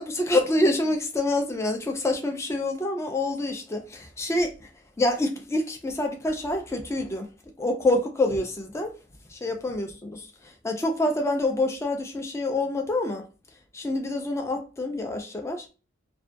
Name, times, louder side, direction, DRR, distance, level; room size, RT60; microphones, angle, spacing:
voice 1, 0.0-4.6 5.0-7.3 7.6-8.9 9.3-13.3 13.7-15.7, left 2 dB, 15° left, 0.3 m, -27 dB
2.3 x 2.2 x 2.4 m
head